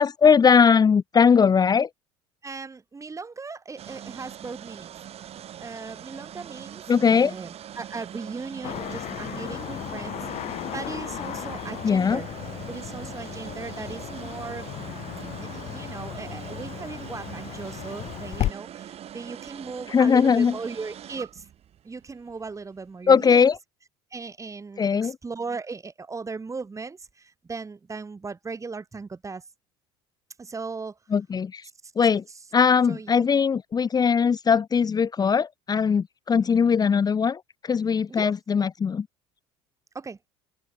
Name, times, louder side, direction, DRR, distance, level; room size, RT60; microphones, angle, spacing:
voice 1, 0.0-1.9 6.9-7.3 11.8-12.2 19.9-20.6 23.1-23.6 24.8-25.2 31.1-31.7 32.0-32.2 32.5-39.1, left 6 dB, 30° left, 1.1 m, -20 dB
voice 2, 2.4-5.0 5.6-12.3 12.7-15.1 15.5-21.4 21.8-23.5 24.1-29.4 30.4-30.9 32.9-33.3 38.1-38.3 39.9-40.2, right 4 dB, 25° right, 5.7 m, -38 dB
sound 1, 3.8-22.9, right 10 dB, 50° right, 4.1 m, -42 dB
Car passing by / Traffic noise roadway noise, 8.6-18.5, left 13 dB, 60° left, 3.7 m, -35 dB
open air
supercardioid pair, 80°, 13 cm